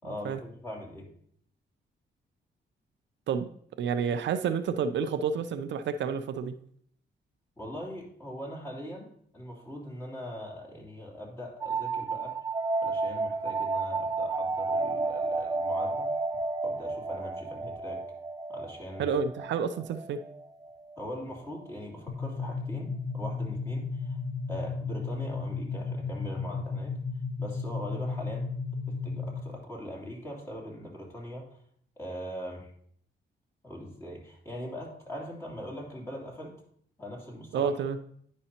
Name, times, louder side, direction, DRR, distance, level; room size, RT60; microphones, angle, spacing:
voice 1, 0.0-1.1 7.6-9.1 9.3-12.4 12.8-16.1 16.6-18.0 18.5-19.1 21.0-24.2 24.5-27.0 27.4-28.5 28.9-31.6 32.0-32.7 33.6-36.5 37.0-37.7, equal, 15° left, -4 dB, 2.8 m, -41 dB
voice 2, 3.8-6.6 19.0-20.2 37.5-38.0, right 6 dB, 75° right, 9 dB, 0.5 m, -29 dB
sound 1, 11.6-21.0, right 3 dB, 20° right, 0.5 m, -32 dB
sound 2, 22.1-29.6, left 4 dB, 60° left, 0.7 m, -34 dB
9.9 x 5.3 x 2.9 m, 0.63 s
cardioid pair, 95°, 19 cm